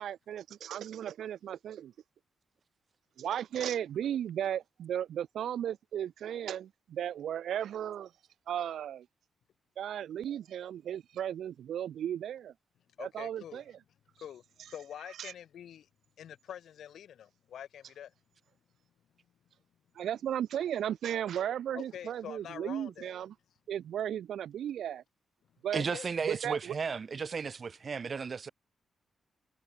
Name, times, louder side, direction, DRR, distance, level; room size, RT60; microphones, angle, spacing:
voice 1, 0.0-1.9 3.2-8.1 8.5-9.1 9.8-12.5 13.0-13.6 15.2-15.3 20.0-23.3 23.7-25.0 25.6-25.8 26.3-26.7, right 10 dB, 85° right, 0.7 m, -35 dB
voice 2, 13.0-13.6 14.2-14.4 14.7-15.8 16.2-18.1 21.7-23.1 25.7-26.1, left 10 dB, 85° left, 6.4 m, -45 dB
voice 3, 25.7-28.5, right 5 dB, 40° right, 1.3 m, -34 dB
wide cardioid pair, 145°, 0 cm